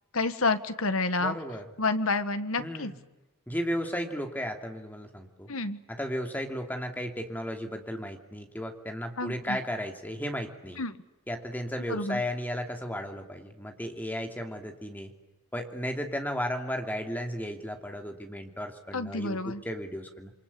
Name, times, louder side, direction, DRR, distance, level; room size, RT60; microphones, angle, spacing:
voice 1, 0.1-1.3 1.8-2.9 5.5-5.8 9.2-9.6 10.8-11.0 11.9-12.2 18.9-19.6, left 3 dB, 70° left, 10 dB, 1.7 m, -29 dB
voice 2, 1.2-1.7 2.6-3.0 3.5-5.5 5.9-10.8 11.3-15.1 15.5-20.3, equal, 10° left, 4 dB, 2.8 m, -34 dB
28.0 x 24.5 x 8.5 m, 1.0 s
head